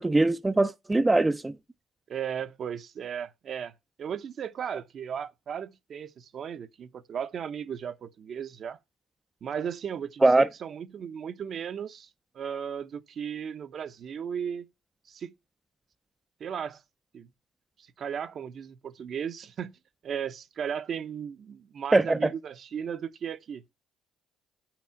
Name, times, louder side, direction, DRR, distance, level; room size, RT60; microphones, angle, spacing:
voice 1, 0.0-1.5 10.2-10.5 21.9-22.3, right 2 dB, 15° right, 0.5 m, -22 dB
voice 2, 2.1-3.7 4.0-8.8 9.4-12.1 12.3-14.7 15.1-15.3 16.4-16.8 17.1-17.3 17.8-19.8 20.0-23.7, right 8 dB, 50° right, 0.8 m, -36 dB
8.3 x 6.0 x 5.7 m
cardioid pair, 95°, 0 cm